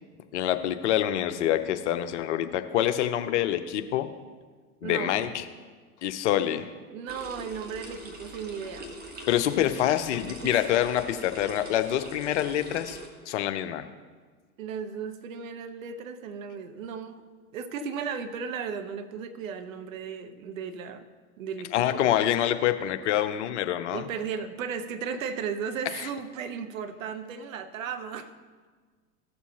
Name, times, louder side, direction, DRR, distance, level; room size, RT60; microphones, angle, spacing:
voice 1, 0.3-4.1 4.8-5.4 6.0-6.7 9.3-13.0 13.3-13.8 21.7-24.0, left 11 dB, 50° left, 9 dB, 0.7 m, -26 dB
voice 2, 4.8-5.3 6.9-9.0 10.4-10.7 14.6-17.2 17.5-21.1 21.4-22.1 23.9-28.3, right 6 dB, 60° right, 9 dB, 0.9 m, -35 dB
sound 1, 7.1-13.1, right 1 dB, 20° right, 1.4 m, -43 dB
16.0 x 6.9 x 2.9 m, 1.5 s
figure-of-eight pair, 90°, 45 cm